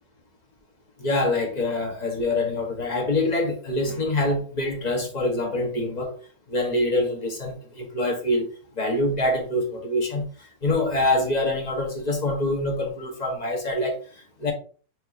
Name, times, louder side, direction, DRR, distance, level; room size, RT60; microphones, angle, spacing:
voice 1, 1.0-6.1 6.5-8.4 8.8-10.3 10.6-14.0 14.4-14.5, left 1 dB, 30° left, 0.9 m, -25 dB
5.7 x 2.9 x 2.5 m
omnidirectional pair, 1.8 m